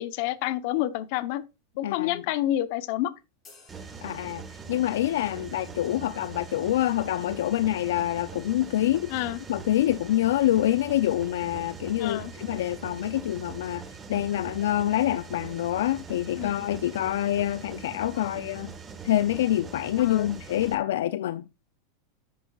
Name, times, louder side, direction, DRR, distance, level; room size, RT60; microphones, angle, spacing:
voice 1, 0.0-1.4 1.8-3.1 9.1-9.4 12.0-12.3 16.4-16.5 18.2-18.3 20.0-20.3, left 14 dB, 60° left, 0.9 m, -28 dB
voice 2, 1.8-2.2 4.0-4.4 4.7-9.2 9.5-18.7 19.0-21.5, left 13 dB, 85° left, 0.4 m, -26 dB
sound 1, 3.4-5.1, left 4 dB, 25° left, 4.1 m, -56 dB
Mechanisms, 3.7-20.7, right 5 dB, 20° right, 1.6 m, -42 dB
10.5 x 8.0 x 2.4 m
supercardioid pair, 135°, 0 cm